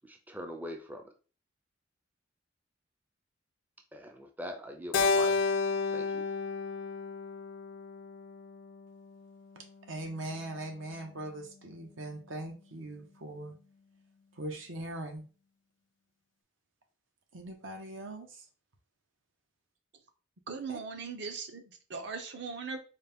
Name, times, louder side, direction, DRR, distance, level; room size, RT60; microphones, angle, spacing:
voice 1, 0.0-1.1 3.9-5.3 5.9-6.3, equal, 10° right, 4 dB, 0.4 m, -42 dB
Keyboard (musical), 4.9-9.3, left 4 dB, 65° left, 0.4 m, -31 dB
voice 2, 9.8-13.6 14.3-15.2 17.3-18.5 20.7-20.8, right 1 dB, 90° right, 4 dB, 0.9 m, -41 dB
voice 3, 20.5-22.8, right 5 dB, 60° right, 6 dB, 0.7 m, -39 dB
4.1 x 2.2 x 3.4 m, 0.37 s
head